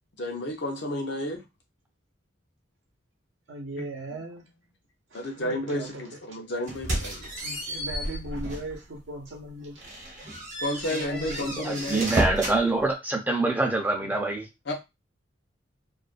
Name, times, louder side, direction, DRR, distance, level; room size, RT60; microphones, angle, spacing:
voice 1, 0.2-1.4 3.8-3.9 5.1-7.3 10.6-12.1 14.7-14.8, left 1 dB, 60° left, 2 dB, 0.7 m, -31 dB
voice 2, 3.5-4.4 5.4-6.2 7.4-9.9 10.9-11.7 14.0-14.1, right 1 dB, 70° right, 0 dB, 0.6 m, -38 dB
sound 1, 6.7-8.8 9.2-9.3 9.8-12.6, right 1 dB, 40° right, 0.8 m, -32 dB
voice 3, 11.6-14.5, right 2 dB, 10° right, 1 dB, 0.5 m, -25 dB
2.4 x 2.2 x 2.4 m, 0.23 s
head